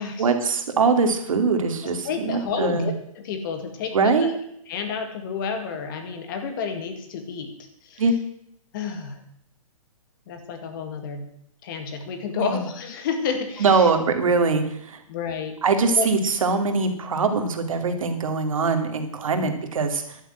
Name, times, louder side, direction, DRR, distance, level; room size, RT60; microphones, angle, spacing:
voice 1, 0.2-2.9 3.9-4.4 8.0-8.1 12.4-12.6 13.6-15.0 15.6-20.2, right 4 dB, 70° right, 6 dB, 2.5 m, -22 dB
voice 2, 2.0-4.3 4.7-7.5 7.8-8.0 8.7-9.2 10.3-11.2 11.6-13.9 15.1-15.5 16.0-16.1 19.4-19.5, left 6 dB, 35° left, 6 dB, 2.2 m, -30 dB
11.5 x 9.0 x 7.9 m, 0.71 s
hypercardioid pair, 160°, 18 cm